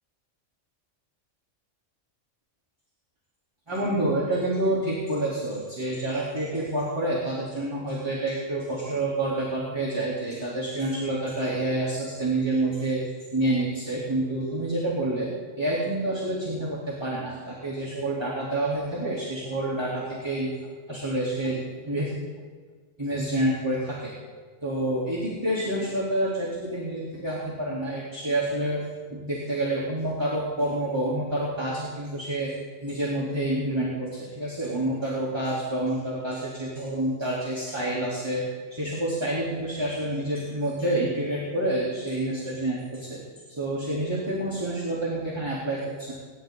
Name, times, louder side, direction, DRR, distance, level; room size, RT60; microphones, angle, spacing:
voice 1, 3.7-13.0 13.3-15.3 15.6-20.5 20.9-22.1 23.0-24.1 24.6-28.8 29.1-32.5 32.8-46.1, right 1 dB, 20° right, -9 dB, 3.6 m, -28 dB
28.5 x 11.5 x 3.9 m, 1.5 s
omnidirectional pair, 1.3 m